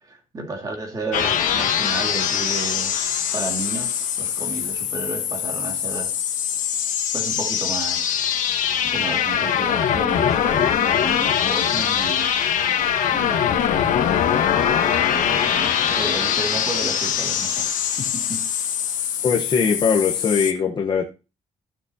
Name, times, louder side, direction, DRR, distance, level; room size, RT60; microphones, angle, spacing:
voice 1, 0.0-6.1 7.1-8.2 8.8-12.3 13.1-13.8 14.6-17.7 18.0-18.4, right 2 dB, 25° right, 2.3 m, -32 dB
sound 1, 1.1-20.5, left 9 dB, 65° left, 1.3 m, -22 dB
voice 2, 19.2-21.0, left 6 dB, 35° left, 1.1 m, -21 dB
15.5 x 6.8 x 2.8 m
cardioid pair, 180°, 15 cm